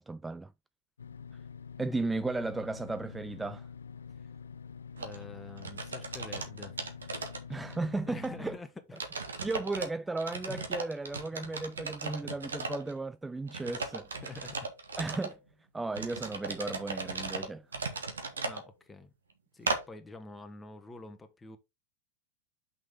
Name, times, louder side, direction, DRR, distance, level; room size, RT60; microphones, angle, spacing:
voice 1, 0.1-0.5 1.8-3.7 7.5-8.6 9.4-14.1 15.0-15.4 15.7-17.7, right 3 dB, 10° right, 0.3 m, -35 dB
sound 1, 1.0-8.6, left 6 dB, 85° left, 0.5 m, -46 dB
voice 2, 4.9-6.8 8.1-9.0 10.5-10.7 14.2-14.7 15.1-15.2 18.4-19.1 19.5-21.6, left 3 dB, 15° left, 1.4 m, -47 dB
sound 2, 5.0-5.2 5.6-7.8 8.2-8.3 9.0-9.9 10.2-12.9 13.5-15.3 15.9-18.6 19.7-19.8, right 4 dB, 85° right, 1.4 m, -37 dB
6.3 x 5.7 x 3.7 m
hypercardioid pair, 95°, 0 cm